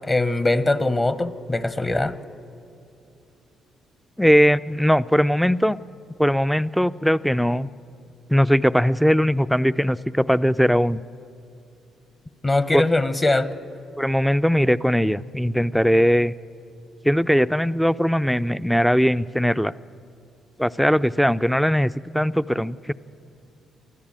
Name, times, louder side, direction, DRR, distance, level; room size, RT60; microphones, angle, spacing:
voice 1, 0.0-2.1 12.4-13.5, left 2 dB, 20° left, 13 dB, 0.9 m, -21 dB
voice 2, 4.2-5.8 6.2-7.7 8.3-11.0 12.7-12.8 14.0-16.3 17.0-19.7 20.6-22.9, equal, ahead, 16 dB, 0.4 m, -20 dB
23.5 x 14.5 x 8.9 m, 2.7 s
cardioid pair, 90°, 0 cm